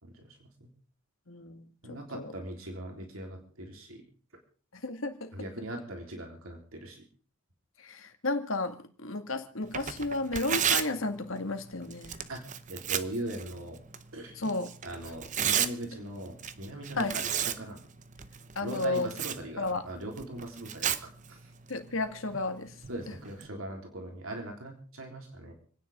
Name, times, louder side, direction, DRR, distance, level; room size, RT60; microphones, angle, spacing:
voice 1, 0.0-0.7 1.8-4.0 5.3-7.0 12.3-12.4 12.7-13.8 14.1-14.3 14.8-17.3 17.6-17.8 18.6-21.5 22.9-25.5, right 1 dB, 85° right, 3.8 m, -40 dB
voice 2, 1.3-2.3 4.7-5.4 7.8-12.3 14.4-14.8 17.0-17.2 18.6-19.1 19.6-19.9 21.7-22.8, left 2 dB, 75° left, 2.0 m, -33 dB
Tearing, 9.6-23.5, right 9 dB, 35° right, 0.7 m, -36 dB
29.5 x 10.0 x 3.7 m
head